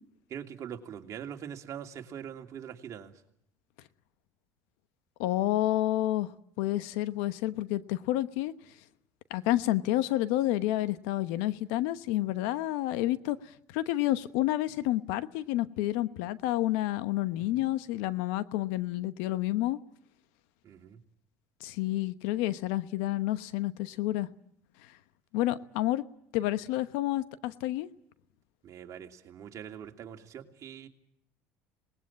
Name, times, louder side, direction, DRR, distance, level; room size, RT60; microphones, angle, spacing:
voice 1, 0.3-3.1 17.5-17.7 20.6-21.0 28.6-30.9, right 8 dB, 45° right, 2.8 m, -43 dB
voice 2, 5.2-6.3 6.6-8.5 9.3-13.4 13.7-19.8 21.6-24.3 25.3-26.0 26.3-27.9, left 15 dB, 85° left, 1.0 m, -29 dB
26.5 x 20.0 x 8.7 m
supercardioid pair, 105°, 7 cm